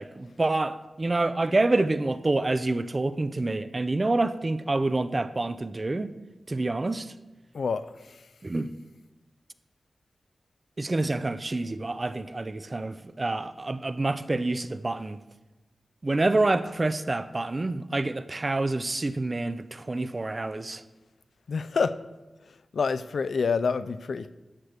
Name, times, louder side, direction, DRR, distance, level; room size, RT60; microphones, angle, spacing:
voice 1, 0.0-6.1 6.5-7.1 8.4-8.7 10.8-15.2 16.0-20.8, right 2 dB, 30° right, 0.4 m, -27 dB
voice 2, 21.5-21.9 22.7-24.3, left 5 dB, 75° left, 0.3 m, -27 dB
13.0 x 7.9 x 3.3 m
wide cardioid pair, 110°, 0 cm